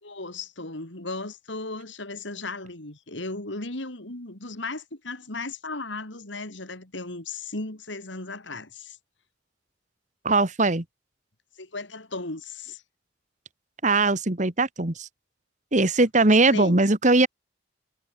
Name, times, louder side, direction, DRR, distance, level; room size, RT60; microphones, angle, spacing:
voice 1, 0.0-9.0 11.6-12.8 16.2-16.8, left 3 dB, 85° left, 3.9 m, -36 dB
voice 2, 10.3-10.8 13.8-15.1 15.7-17.3, right 2 dB, 40° right, 1.8 m, -20 dB
head